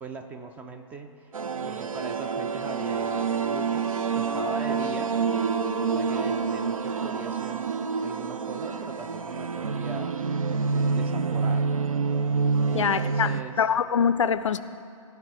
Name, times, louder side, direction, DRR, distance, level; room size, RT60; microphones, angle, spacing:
voice 1, 0.0-1.3 1.6-5.2 5.8-7.7 8.0-10.2 10.7-11.7 12.7-13.6, right 4 dB, 10° right, 7 dB, 0.3 m, -40 dB
sound 1, 1.3-13.4, right 5 dB, 80° right, 0.5 m, -27 dB
voice 2, 12.7-13.3 13.6-14.6, left 7 dB, 65° left, 14 dB, 0.4 m, -23 dB
16.0 x 5.8 x 4.8 m, 2.5 s
figure-of-eight pair, 120°, 17 cm